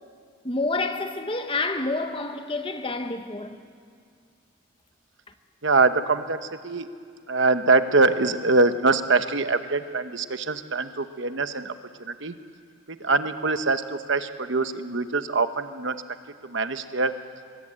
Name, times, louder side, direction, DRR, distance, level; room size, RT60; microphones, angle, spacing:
voice 1, 0.4-3.6, left 2 dB, 25° left, 1.1 m, -28 dB
voice 2, 5.6-6.9 7.3-11.7 12.0-12.3 12.9-15.9 16.4-17.1, right 3 dB, 60° right, 1.0 m, -23 dB
22.0 x 22.0 x 8.7 m
head